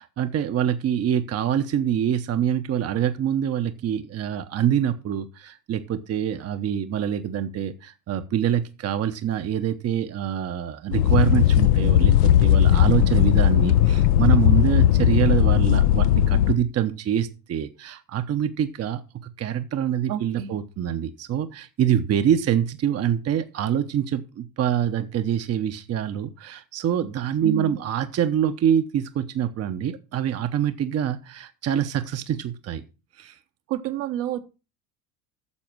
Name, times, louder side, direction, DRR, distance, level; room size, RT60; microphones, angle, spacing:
voice 1, 0.0-19.0 19.4-32.8 33.2-33.4, right 9 dB, 30° right, 9 dB, 1.0 m, -25 dB
sound 1, 10.9-16.6, left 11 dB, 70° left, 0.8 m, -17 dB
voice 2, 20.1-20.6 27.4-27.8 33.7-34.4, right 12 dB, 55° right, 7 dB, 1.4 m, -29 dB
9.8 x 6.9 x 6.1 m, 0.31 s
hypercardioid pair, 75°, 48 cm